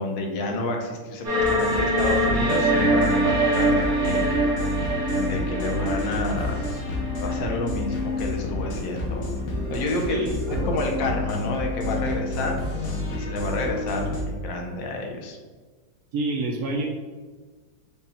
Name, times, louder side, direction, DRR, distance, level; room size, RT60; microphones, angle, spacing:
voice 1, 0.0-4.3 5.2-6.7 7.2-9.3 9.7-12.5 13.1-15.4, left 2 dB, 80° left, 2 dB, 1.5 m, -30 dB
sound 1, 1.2-8.2, right 1 dB, 45° right, 1.5 m, -24 dB
sound 2, 1.4-14.3, left 2 dB, 55° left, 0.8 m, -29 dB
voice 2, 10.1-10.8 16.1-16.9, right 2 dB, 75° right, 1 dB, 0.8 m, -28 dB
5.4 x 2.3 x 4.2 m, 1.4 s
omnidirectional pair, 2.0 m